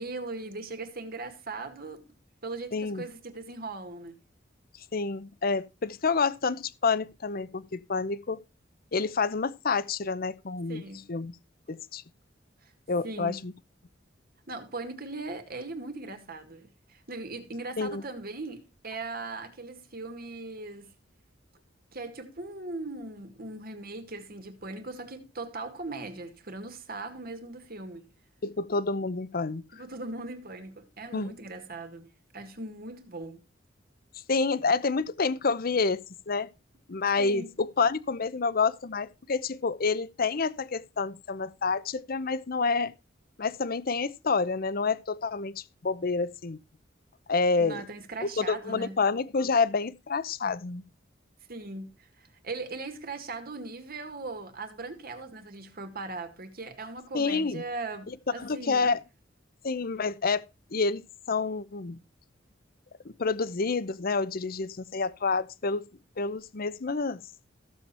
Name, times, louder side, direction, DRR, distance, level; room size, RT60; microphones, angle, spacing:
voice 1, 0.0-2.0 2.4-4.2 10.7-11.0 12.6-12.7 13.0-13.4 14.5-21.0 21.9-28.1 29.7-33.4 37.2-37.5 47.6-49.0 51.5-58.9, right 3 dB, 55° right, 2.1 m, -39 dB
voice 2, 2.7-3.0 4.9-8.4 8.9-10.8 11.1-11.3 11.7-12.0 12.9-13.5 17.8-18.0 28.4-29.6 31.1-31.3 34.3-36.5 36.9-42.9 43.4-46.6 47.3-47.8 48.2-50.8 57.1-57.6 58.1-59.0 59.6-60.4 60.7-62.0 63.0-65.8 66.2-67.2, left 4 dB, 50° left, 0.7 m, -28 dB
15.0 x 7.2 x 4.3 m
head